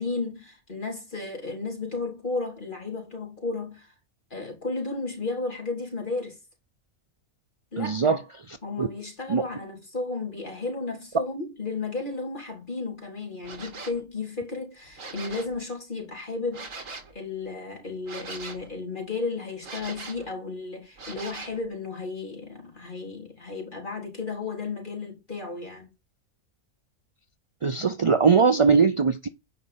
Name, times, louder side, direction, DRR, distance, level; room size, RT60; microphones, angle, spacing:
voice 1, 0.0-3.9 4.3-6.4 7.7-8.2 8.6-25.9, left 3 dB, 40° left, 3.7 m, -33 dB
voice 2, 7.8-8.2 8.5-8.9 9.3-9.4 27.6-29.3, right 5 dB, 55° right, 0.3 m, -21 dB
sound 1, 13.4-14.0 14.8-15.6 16.5-17.1 18.0-18.7 19.6-20.3 21.0-21.6, right 3 dB, 75° right, 2.4 m, -40 dB
9.6 x 5.3 x 5.7 m
omnidirectional pair, 1.4 m